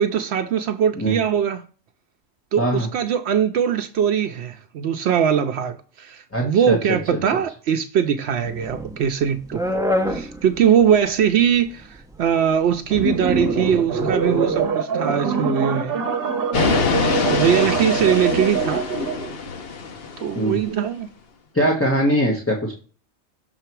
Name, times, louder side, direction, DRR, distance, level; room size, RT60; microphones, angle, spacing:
voice 1, 0.0-1.6 2.5-9.6 10.1-16.0 16.6-16.9 17.3-18.9 20.2-21.1, right 8 dB, 75° right, 0.8 m, -21 dB
voice 2, 2.6-2.9 6.3-7.0 20.3-20.6 21.5-22.7, equal, 10° left, 1.2 m, -21 dB
sound 1, 8.4-14.6, left 1 dB, 5° right, 0.4 m, -29 dB
sound 2, 12.9-19.3, right 5 dB, 55° right, 1.1 m, -24 dB
sound 3, 16.5-20.5, left 5 dB, 60° left, 1.0 m, -24 dB
6.7 x 4.3 x 4.5 m
omnidirectional pair, 1.2 m